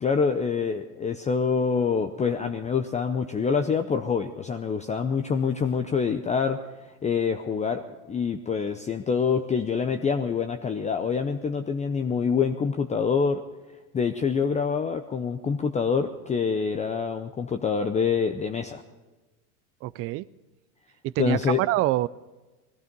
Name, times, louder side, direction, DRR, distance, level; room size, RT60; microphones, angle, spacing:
voice 1, 0.0-6.6 7.0-13.4 13.9-18.8 21.2-21.6, left 6 dB, 15° left, 6 dB, 0.6 m, -26 dB
voice 2, 19.8-20.3 21.0-22.1, right 16 dB, 30° right, 20 dB, 0.4 m, -25 dB
18.5 x 14.5 x 5.3 m, 1.2 s
hypercardioid pair, 110°, 45 cm